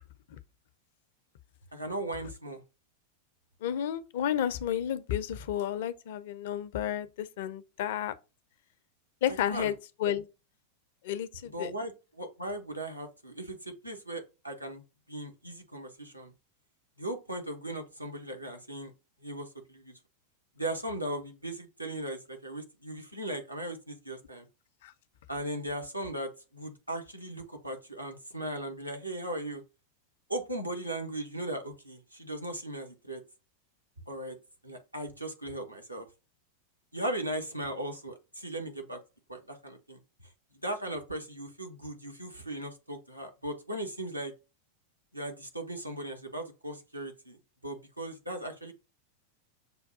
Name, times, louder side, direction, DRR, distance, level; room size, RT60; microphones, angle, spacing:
voice 1, 1.7-2.6 9.3-9.7 10.0-10.1 11.5-14.8 15.1-16.3 17.0-18.9 19.2-19.9 20.6-24.5 25.3-29.6 30.3-33.2 34.1-34.4 34.6-36.1 36.9-39.0 39.3-40.0 40.6-44.3 45.1-47.4 47.6-48.7, right 1 dB, 85° right, 0.8 m, -38 dB
voice 2, 3.6-8.1 9.2-9.7 10.0-10.2 11.0-11.7 24.8-24.9, left 10 dB, 55° left, 0.4 m, -31 dB
6.8 x 2.3 x 2.5 m
figure-of-eight pair, 90°, 0 cm